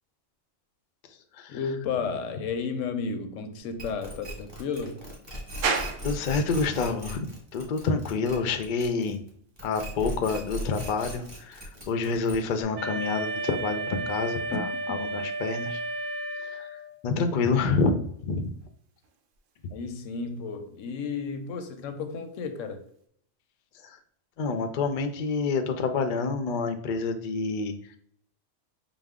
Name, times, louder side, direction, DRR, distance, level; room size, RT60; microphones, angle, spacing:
voice 1, 1.5-5.0 14.5-14.7 19.7-22.8, left 5 dB, 85° left, 1.0 m, -32 dB
sound 1, 3.8-9.3 9.6-12.6, equal, 20° right, 1.0 m, -38 dB
sound 2, 5.6-23.1, right 5 dB, 85° right, 1.0 m, -42 dB
voice 2, 6.0-7.3 7.5-9.2 9.6-15.8 16.3-18.5 23.8-24.0 24.4-28.0, left 4 dB, 60° left, 0.5 m, -28 dB
Wind instrument woodwind instrument, 12.8-17.0, right 2 dB, 55° right, 0.9 m, -33 dB
5.1 x 2.0 x 3.5 m
omnidirectional pair, 1.3 m